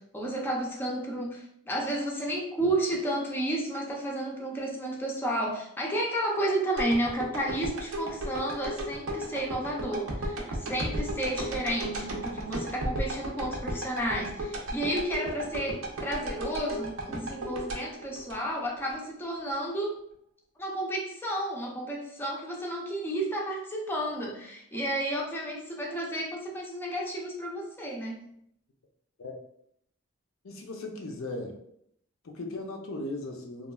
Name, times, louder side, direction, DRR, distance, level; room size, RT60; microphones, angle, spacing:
voice 1, 0.0-20.0 20.6-28.3, right 1 dB, 10° left, -2 dB, 0.4 m, -32 dB
sound 1, 6.8-18.9 19.4-19.5, right 1 dB, 80° right, 0.6 m, -35 dB
voice 2, 30.4-31.6 32.2-33.7, left 2 dB, 75° left, 2 dB, 0.5 m, -37 dB
3.0 x 2.3 x 2.2 m, 0.70 s
head